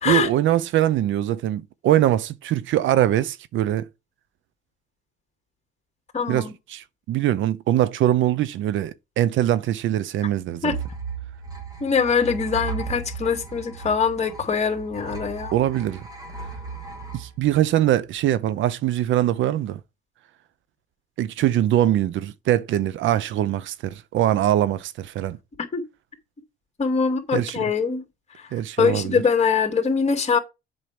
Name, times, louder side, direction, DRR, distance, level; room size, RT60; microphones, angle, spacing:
voice 1, 0.0-3.9 6.3-10.7 15.5-16.1 17.1-19.8 21.2-25.4 27.3-27.6 28.5-29.2, right 12 dB, 70° right, 0.6 m, -22 dB
voice 2, 6.1-6.5 10.6-10.8 11.8-15.5 25.7-25.8 26.8-28.0 28.4-28.5 28.8-30.4, left 5 dB, 30° left, 2.6 m, -23 dB
sound 1, 10.7-18.2, right 5 dB, 20° right, 2.8 m, -36 dB
7.8 x 5.7 x 5.1 m
cardioid pair, 105°, 21 cm